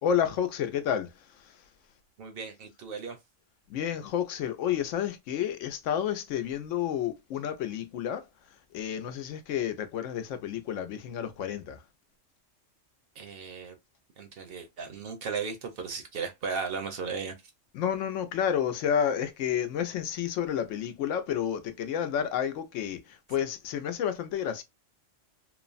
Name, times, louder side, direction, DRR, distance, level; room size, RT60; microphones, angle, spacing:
voice 1, 0.0-1.6 3.7-8.3 8.7-11.8 17.7-24.6, left 9 dB, 80° left, 0.9 m, -30 dB
voice 2, 2.2-3.2 13.2-13.7 14.2-17.4, right 5 dB, 60° right, 0.7 m, -36 dB
3.1 x 2.0 x 2.4 m
omnidirectional pair, 1.3 m